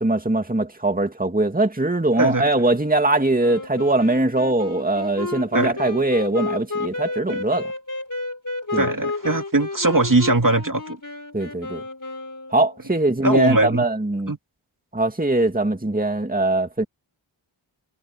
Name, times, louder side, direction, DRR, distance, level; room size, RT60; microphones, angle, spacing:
voice 1, 0.0-7.7 8.7-8.9 11.3-11.8 12.5-14.3 14.9-16.8, right 2 dB, 15° right, 2.2 m, -21 dB
voice 2, 2.2-2.5 5.5-5.8 7.3-7.4 8.8-11.0 13.2-13.9 14.3-14.4, right 2 dB, 40° right, 2.5 m, -20 dB
Wind instrument woodwind instrument, 3.4-12.9, left 3 dB, 40° left, 3.6 m, -31 dB
wide cardioid pair, 45°, 48 cm